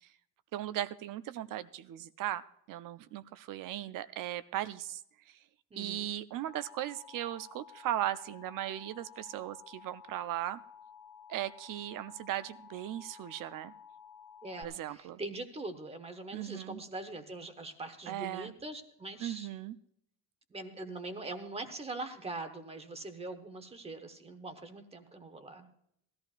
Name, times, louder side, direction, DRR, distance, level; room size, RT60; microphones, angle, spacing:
voice 1, 0.5-5.0 5.8-10.6 11.3-13.7 14.6-15.2 16.3-16.8 18.1-18.5 19.2-19.8, right 13 dB, 50° right, 13 dB, 0.4 m, -37 dB
voice 2, 5.7-6.1 14.4-19.5 20.5-25.7, right 2 dB, 15° right, 8 dB, 0.9 m, -42 dB
Alarm, 6.5-14.6, left 7 dB, 75° left, 1.3 m, -53 dB
19.0 x 14.0 x 2.4 m, 0.74 s
cardioid pair, 170°, 44 cm